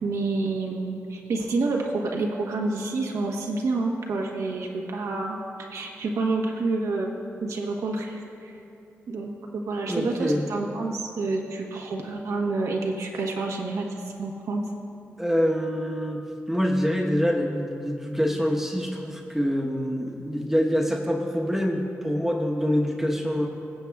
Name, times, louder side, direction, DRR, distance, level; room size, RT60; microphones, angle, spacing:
voice 1, 0.0-5.4 5.7-7.1 7.4-8.5 9.1-14.6, right 3 dB, 80° right, 1 dB, 1.1 m, -28 dB
voice 2, 9.9-10.4 15.2-16.2 16.5-23.5, equal, 5° right, -1 dB, 1.0 m, -25 dB
21.5 x 7.4 x 2.3 m, 2.8 s
cardioid pair, 65°, 5 cm